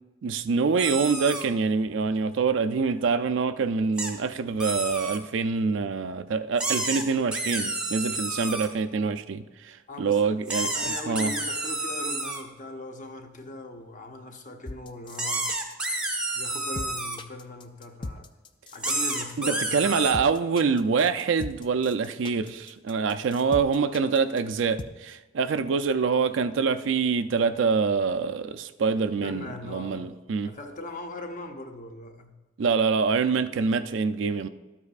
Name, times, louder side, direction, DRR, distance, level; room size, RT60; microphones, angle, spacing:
voice 1, 0.2-11.3 19.4-30.5 32.6-34.5, right 5 dB, 70° right, 0.4 m, -25 dB
sound 1, 0.8-1.5 4.0-4.1 4.6-5.2 6.6-8.7 10.5-12.4 15.1-17.2 18.8-20.1, right 2 dB, 5° right, 0.8 m, -30 dB
voice 2, 9.9-10.3 10.6-15.5 16.3-18.3 18.7-20.0 29.2-30.1 30.4-32.4, left 2 dB, 40° left, 0.7 m, -40 dB
sound 2, 14.6-24.8, left 2 dB, 25° left, 0.3 m, -38 dB
12.5 x 8.3 x 2.4 m
head